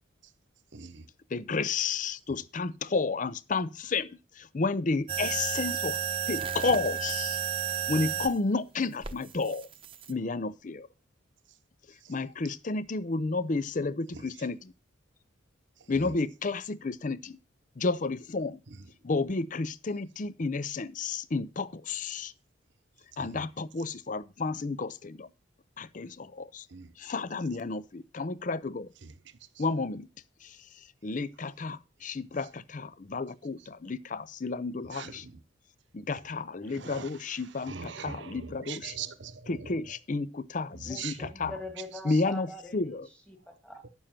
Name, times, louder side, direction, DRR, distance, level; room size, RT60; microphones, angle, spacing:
voice 1, 0.7-1.0 26.7-26.9 34.9-35.1 36.8-37.1 37.7-39.5 41.0-41.1 41.4-41.5, right 7 dB, 60° right, 0.8 m, -40 dB
voice 2, 1.3-6.0 6.3-7.4 7.9-9.7 10.1-10.9 12.1-14.7 15.9-17.4 17.8-18.6 19.0-22.3 23.2-25.3 25.8-26.7 27.0-28.9 29.6-30.1 30.4-35.3 35.9-39.0 39.5-41.5 42.0-43.1, left 3 dB, 40° left, 0.5 m, -31 dB
sound 1, 5.1-8.3 9.0-10.1, right 8 dB, 25° right, 0.9 m, -32 dB
voice 3, 40.9-43.8, left 1 dB, 5° left, 1.9 m, -43 dB
10.0 x 7.0 x 5.8 m
head